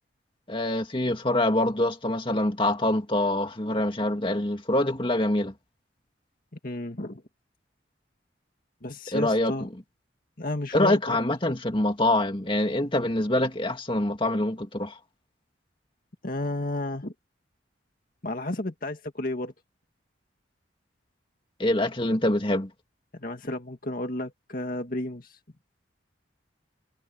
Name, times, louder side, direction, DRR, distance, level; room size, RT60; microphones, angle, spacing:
voice 1, 0.5-5.5 9.1-9.5 10.7-14.9 21.6-22.7, left 1 dB, 25° left, 2.4 m, -25 dB
voice 2, 6.6-7.2 8.8-9.7 10.4-11.2 11.5-11.6 16.2-17.1 18.2-19.5 23.1-25.4, left 1 dB, 50° left, 2.0 m, -32 dB
head